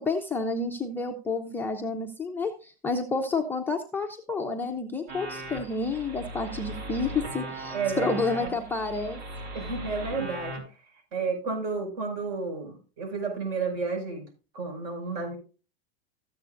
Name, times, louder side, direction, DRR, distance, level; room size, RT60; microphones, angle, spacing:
voice 1, 0.1-9.2, left 3 dB, 5° left, 1 dB, 0.6 m, -30 dB
sound 1, 5.1-10.6, right 1 dB, 75° right, 4.5 m, -38 dB
voice 2, 7.7-8.5 9.5-10.6 11.1-14.2 14.5-15.4, right 4 dB, 50° right, 4 dB, 5.7 m, -31 dB
13.5 x 8.2 x 2.5 m, 0.34 s
supercardioid pair, 145°, 32 cm